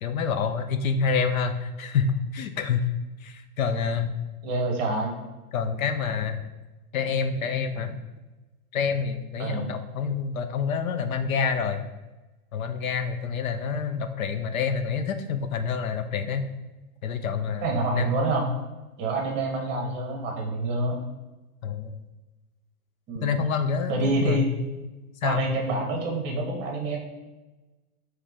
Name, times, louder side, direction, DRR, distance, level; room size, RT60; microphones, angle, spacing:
voice 1, 0.0-2.9 3.2-4.1 5.5-6.4 6.9-8.0 8.7-11.9 12.5-16.4 17.0-18.1 21.6-22.0 23.2-24.6 25.2-25.4, left 6 dB, 60° left, 8 dB, 0.5 m, -27 dB
voice 2, 4.4-5.2 9.4-9.7 17.6-18.5 19.0-21.0 23.1-23.3 23.9-24.5 25.2-27.0, right 2 dB, 25° right, 0 dB, 0.9 m, -27 dB
4.8 x 3.1 x 3.5 m, 1.1 s
hypercardioid pair, 140°, 46 cm